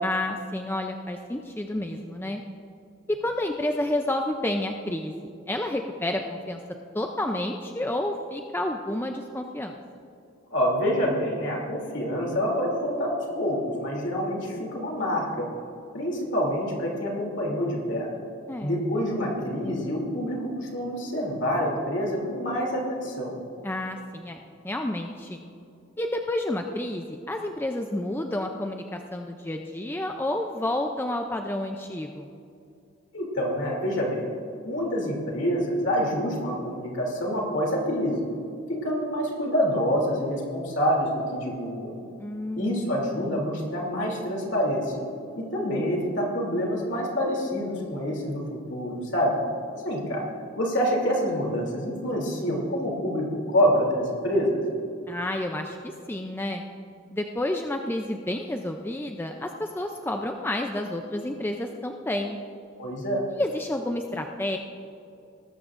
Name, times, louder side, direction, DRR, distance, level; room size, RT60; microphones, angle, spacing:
voice 1, 0.0-2.4 3.1-6.6 6.9-9.8 18.5-18.8 23.6-25.4 26.0-32.3 42.2-42.8 55.1-56.6 57.1-62.4 63.4-64.6, left 1 dB, 10° left, 4 dB, 0.4 m, -30 dB
voice 2, 10.5-15.5 15.9-18.1 18.6-23.3 33.1-34.2 34.6-38.2 38.7-41.9 42.6-45.0 45.3-48.4 48.7-49.4 49.7-50.2 50.6-54.6 62.8-63.2, equal, 60° left, -2 dB, 2.9 m, -27 dB
19.5 x 13.0 x 2.5 m, 2.6 s
head